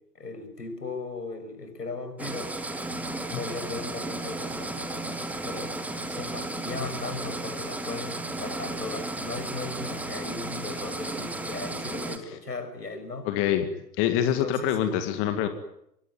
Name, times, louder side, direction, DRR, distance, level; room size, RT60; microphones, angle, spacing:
voice 1, 0.1-2.5 3.3-5.1 5.4-5.7 6.1-13.3 14.3-14.8, left 3 dB, 75° left, 9 dB, 6.4 m, -37 dB
sound 1, 2.2-12.2, right 2 dB, 5° right, 1.9 m, -34 dB
voice 2, 13.3-13.7 14.0-15.5, left 10 dB, 25° left, 9 dB, 2.1 m, -25 dB
25.5 x 22.5 x 9.6 m, 0.78 s
figure-of-eight pair, 115°, 49 cm